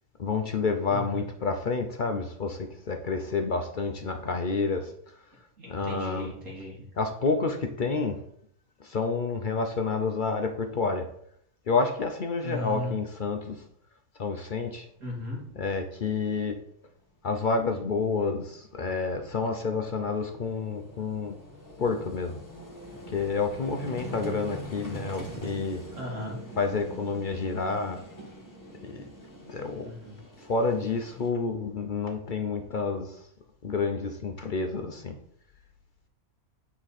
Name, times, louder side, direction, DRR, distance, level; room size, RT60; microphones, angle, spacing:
voice 1, 0.2-4.9 5.7-6.3 7.0-8.2 8.8-11.1 11.7-13.7 14.2-14.9 15.6-16.6 17.2-21.4 21.8-22.4 23.1-25.8 26.6-28.0 28.8-29.0 29.5-29.9 30.4-33.2 33.6-35.2, left 4 dB, 55° left, 5 dB, 0.5 m, -29 dB
voice 2, 0.9-1.2 5.6-6.7 12.4-12.9 15.0-15.4 25.9-26.4 29.8-30.2, left 1 dB, 55° right, -2 dB, 2.6 m, -36 dB
Vehicle, 15.2-15.3 15.5-15.6 17.6-17.7 17.9-31.3, equal, 15° left, 1.5 m, -44 dB
8.9 x 4.4 x 4.1 m, 0.69 s
omnidirectional pair, 1.6 m